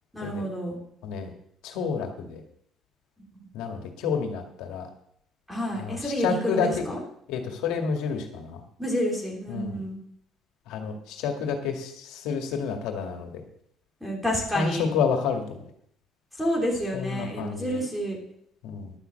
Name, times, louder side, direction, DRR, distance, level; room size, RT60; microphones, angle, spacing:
voice 1, 0.1-0.8 5.5-7.0 8.8-10.0 14.0-14.9 16.4-18.2, equal, ahead, -1 dB, 3.0 m, -29 dB
voice 2, 1.0-1.3 1.6-2.4 3.5-4.9 5.7-6.8 7.3-8.6 9.5-9.8 10.7-13.4 14.5-15.6 16.9-17.8 18.6-18.9, left 6 dB, 85° left, 3 dB, 2.1 m, -29 dB
11.5 x 6.8 x 8.0 m, 0.70 s
cardioid pair, 150°, 0 cm